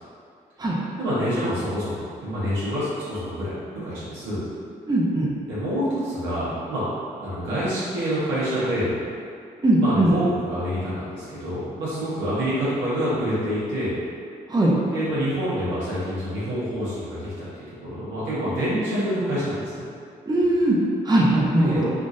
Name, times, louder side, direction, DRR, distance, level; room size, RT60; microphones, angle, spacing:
voice 1, 1.0-1.9 2.2-4.4 5.5-6.8 7.2-8.9 9.8-14.0 14.9-17.3 17.7-19.8 21.6-21.8, equal, 80° right, -11 dB, 1.2 m, -27 dB
voice 2, 4.9-5.3 9.6-10.1 14.5-14.7 20.3-20.8 21.1-21.9, right 1 dB, 20° right, -5 dB, 0.7 m, -19 dB
3.6 x 2.5 x 2.6 m, 2.4 s
hypercardioid pair, 40°, 19 cm